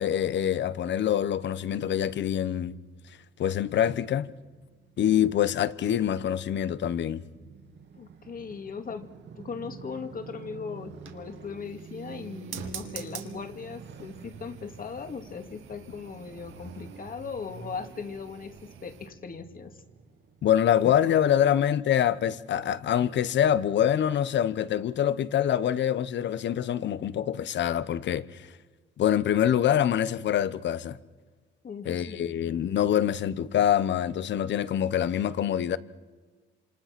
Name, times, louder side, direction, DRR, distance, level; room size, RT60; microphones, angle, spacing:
voice 1, 0.0-2.8 3.4-4.3 5.0-7.2 20.4-28.5 29.0-31.0 31.8-35.8, left 10 dB, 65° left, 1.1 m, -25 dB
Motorcycle, 2.7-20.8, right 6 dB, 60° right, 2.2 m, -48 dB
voice 2, 8.0-19.8 31.6-32.3, left 5 dB, 45° left, 2.3 m, -39 dB
sound 1, 10.7-19.1, right 8 dB, 85° right, 2.3 m, -47 dB
28.0 x 27.0 x 6.1 m
cardioid pair, 90°, 20 cm